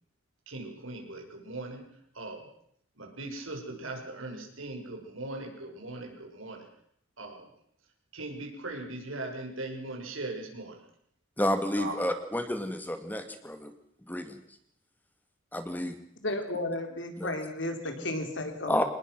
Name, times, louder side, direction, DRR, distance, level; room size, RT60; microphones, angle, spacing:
voice 1, 0.5-1.9 2.1-2.5 3.0-6.7 7.2-7.5 8.1-10.8 11.8-12.1, right 2 dB, 85° right, 2 dB, 5.8 m, -39 dB
voice 2, 11.4-13.7 14.1-14.4 15.5-16.0 17.2-17.4 18.7-18.8, left 1 dB, 10° left, 8 dB, 2.0 m, -30 dB
voice 3, 16.2-18.8, left 1 dB, 65° left, 5 dB, 4.1 m, -33 dB
26.0 x 20.0 x 6.2 m, 0.71 s
head